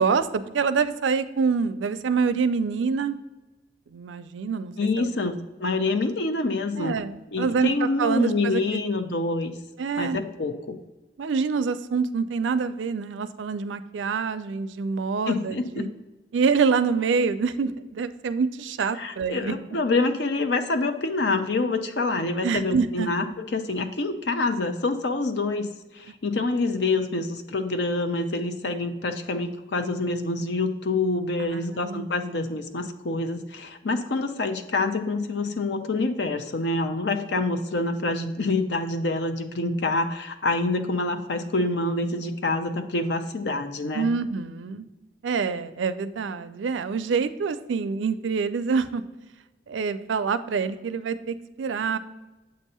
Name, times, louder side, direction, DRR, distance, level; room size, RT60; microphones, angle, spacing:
voice 1, 0.0-3.2 3.9-5.1 6.8-8.9 9.8-10.2 11.2-15.9 16.3-19.6 22.4-23.1 31.4-32.1 43.9-44.9 45.2-49.0 49.7-52.0, right 5 dB, 85° right, 12 dB, 0.4 m, -26 dB
voice 2, 4.8-7.0 7.3-9.5 10.0-10.8 15.3-15.9 18.9-25.7 25.9-44.1, left 3 dB, 70° left, 8 dB, 0.6 m, -26 dB
7.7 x 2.7 x 5.4 m, 1.1 s
head